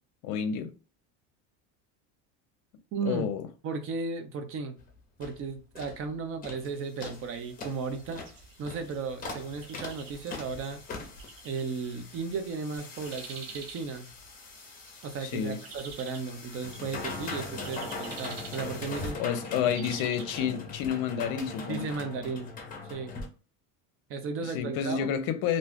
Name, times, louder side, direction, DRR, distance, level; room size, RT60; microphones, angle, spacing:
voice 1, 0.2-0.7 3.1-3.5 15.2-15.6 19.2-21.9 24.4-25.6, left 8 dB, 55° left, 0.6 m, -30 dB
voice 2, 2.9-3.3 3.6-4.8 5.2-8.2 8.6-10.8 11.4-14.1 15.0-19.2 21.7-22.5 22.8-23.1 24.1-25.1, right 4 dB, 35° right, 0.5 m, -35 dB
sound 1, 4.8-4.9 5.2-5.4 5.7-6.0 6.4-6.7 7.0-23.3, left 3 dB, 25° left, 0.7 m, -41 dB
sound 2, 8.0-20.7, right 6 dB, 65° right, 0.8 m, -48 dB
2.5 x 2.3 x 3.5 m
cardioid pair, 145°, 37 cm